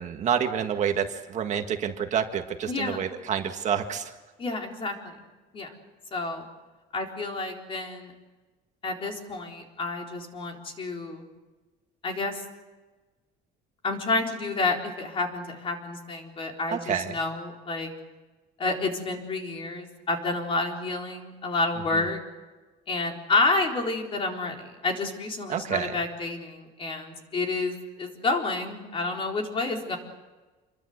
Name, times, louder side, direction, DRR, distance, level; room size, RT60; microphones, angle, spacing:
voice 1, 0.0-4.1 16.7-17.2 21.9-22.0 25.5-26.0, right 8 dB, 40° right, 5 dB, 1.8 m, -28 dB
voice 2, 2.7-3.0 4.4-5.2 5.5-5.7 6.1-6.4 6.9-8.1 8.8-11.3 12.0-12.4 13.8-17.9 18.6-22.2 22.9-30.0, left 3 dB, 30° left, 2 dB, 4.1 m, -29 dB
27.5 x 23.0 x 8.1 m, 1.2 s
cardioid pair, 165°, 18 cm